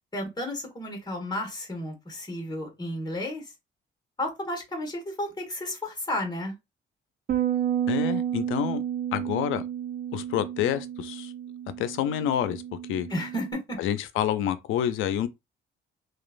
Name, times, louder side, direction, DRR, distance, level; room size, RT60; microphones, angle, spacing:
voice 1, 0.1-3.4 4.2-6.6 13.1-13.8, left 1 dB, 20° left, 1.3 m, -32 dB
Bass guitar, 7.3-13.5, right 10 dB, 50° right, 0.4 m, -31 dB
voice 2, 7.9-8.8 9.1-9.6 10.1-11.3 11.8-12.6 12.9-13.1 13.8-15.3, left 10 dB, 85° left, 0.4 m, -28 dB
2.9 x 2.3 x 2.4 m
cardioid pair, 90°, 20 cm